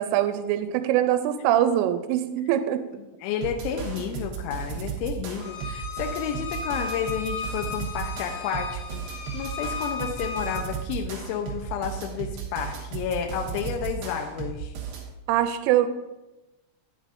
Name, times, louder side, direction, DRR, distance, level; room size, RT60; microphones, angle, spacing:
voice 1, 0.0-2.8 15.3-15.9, right 11 dB, 90° right, 10 dB, 3.1 m, -23 dB
voice 2, 3.2-9.0 9.3-14.7, left 8 dB, 80° left, 3 dB, 2.8 m, -31 dB
sound 1, 3.4-15.1, right 7 dB, 70° right, 2.3 m, -35 dB
Bowed string instrument, 5.4-10.6, left 5 dB, 55° left, 1.7 m, -35 dB
9.7 x 8.2 x 2.5 m, 1.0 s
omnidirectional pair, 5.7 m